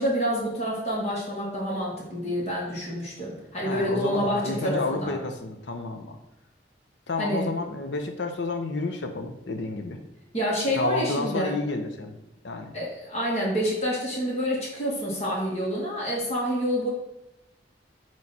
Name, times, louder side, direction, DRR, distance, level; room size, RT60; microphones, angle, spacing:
voice 1, 0.0-5.2 7.2-7.5 10.3-11.5 12.7-16.9, equal, 40° left, -5 dB, 2.0 m, -28 dB
voice 2, 3.6-6.2 7.1-10.0 10.7-12.2 12.4-12.7, left 3 dB, 85° left, 5 dB, 0.7 m, -30 dB
8.6 x 3.2 x 4.2 m, 0.95 s
head